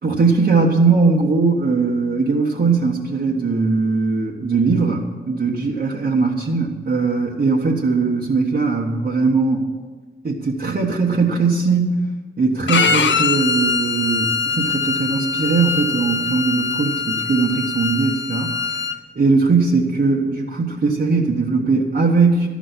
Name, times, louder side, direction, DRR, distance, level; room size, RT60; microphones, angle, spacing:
voice 1, 0.0-9.7 10.2-12.1 12.4-18.8 19.1-22.5, right 4 dB, 60° right, -4 dB, 1.5 m, -19 dB
Bowed string instrument, 12.7-18.9, left 5 dB, 85° left, 0.6 m, -22 dB
13.0 x 6.2 x 9.8 m, 1.4 s
wide cardioid pair, 125°, 19 cm